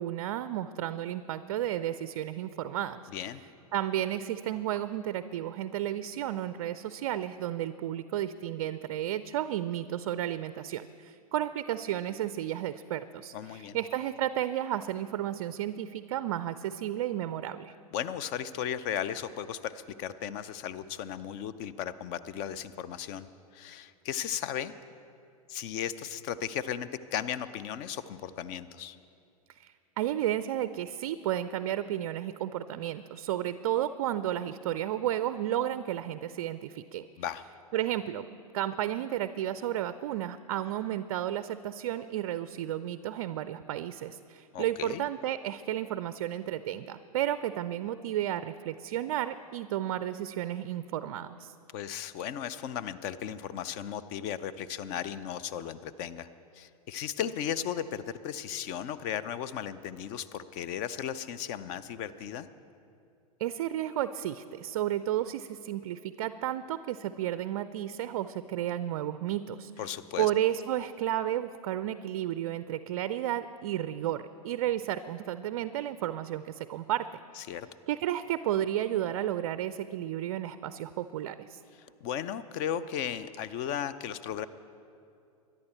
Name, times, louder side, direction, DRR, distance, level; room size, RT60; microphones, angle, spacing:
voice 1, 0.0-3.0 3.7-17.7 29.5-37.0 37.7-38.2 38.5-51.5 63.4-69.7 70.2-77.1 77.9-81.6, right 12 dB, 45° right, 13 dB, 0.4 m, -32 dB
voice 2, 13.3-13.8 17.9-24.7 25.5-29.0 37.2-37.4 44.5-45.0 51.7-56.3 56.5-62.5 69.8-70.3 77.4-77.7 82.0-84.5, left 9 dB, 35° left, 15 dB, 0.6 m, -36 dB
22.5 x 11.0 x 4.4 m, 2.5 s
figure-of-eight pair, 95°, 20 cm